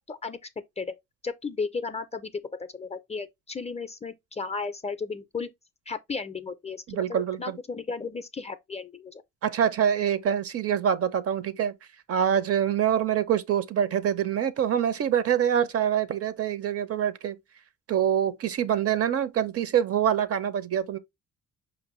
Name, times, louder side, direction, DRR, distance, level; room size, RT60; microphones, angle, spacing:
voice 1, 0.1-0.4 0.8-0.9 1.2-5.5 5.9-9.2, left 4 dB, 20° left, 0.4 m, -34 dB
voice 2, 6.9-7.6 9.4-11.7 12.1-17.4 17.9-21.0, right 9 dB, 50° right, 0.6 m, -25 dB
5.0 x 2.6 x 2.9 m
cardioid pair, 90°, 30 cm